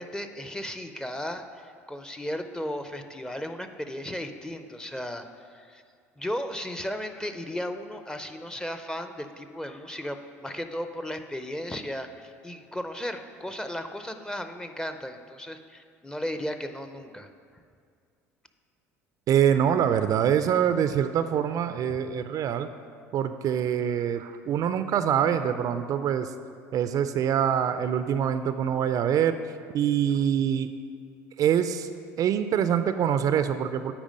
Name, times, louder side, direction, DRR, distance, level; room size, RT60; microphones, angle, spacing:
voice 1, 0.0-5.8 6.2-17.3, equal, 10° left, 8 dB, 0.6 m, -35 dB
voice 2, 19.3-22.7 23.1-26.3 26.7-29.4 29.7-30.7 31.4-31.9 32.2-33.9, right 9 dB, 45° right, 10 dB, 0.4 m, -24 dB
8.7 x 4.9 x 5.2 m, 2.2 s
hypercardioid pair, 70°, 8 cm